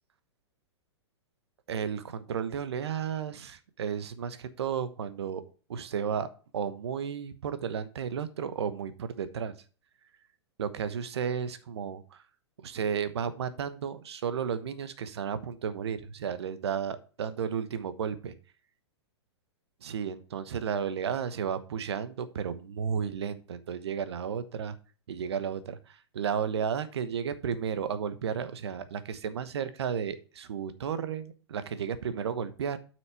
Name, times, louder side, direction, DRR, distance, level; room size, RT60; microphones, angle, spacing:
voice 1, 1.7-5.4 5.7-6.3 6.5-9.5 10.6-12.2 12.6-18.3 19.8-24.8 25.1-32.8, right 7 dB, 65° right, 13 dB, 1.1 m, -33 dB
7.7 x 6.2 x 4.3 m, 0.37 s
figure-of-eight pair, 105°, 15 cm